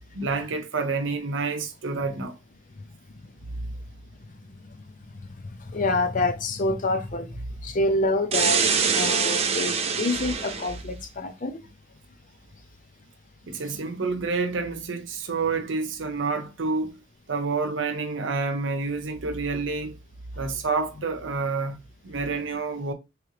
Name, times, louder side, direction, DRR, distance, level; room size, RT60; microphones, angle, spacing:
voice 1, 0.1-2.4 13.4-17.0 17.3-20.0 20.4-21.8 22.0-22.9, right 4 dB, 85° right, 0.7 m, -28 dB
voice 2, 5.5-8.6 8.9-11.6, left 2 dB, 45° left, 0.6 m, -27 dB
sound 1, 8.3-10.8, right 6 dB, 35° right, 0.5 m, -24 dB
3.7 x 3.1 x 3.2 m
head